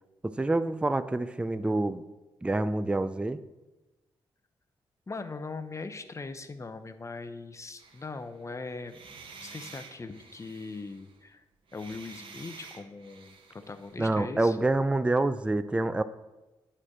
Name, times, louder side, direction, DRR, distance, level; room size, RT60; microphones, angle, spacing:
voice 1, 0.2-2.0 2.4-3.4 14.0-16.0, right 2 dB, 10° right, 12 dB, 0.4 m, -27 dB
voice 2, 5.1-11.4 11.7-14.6, left 3 dB, 30° left, 10 dB, 0.7 m, -40 dB
sound 1, 7.8-8.4 8.8-11.2 11.7-14.0, right 4 dB, 60° right, 1.0 m, -50 dB
8.5 x 3.3 x 6.1 m, 1.1 s
supercardioid pair, 55°, 10 cm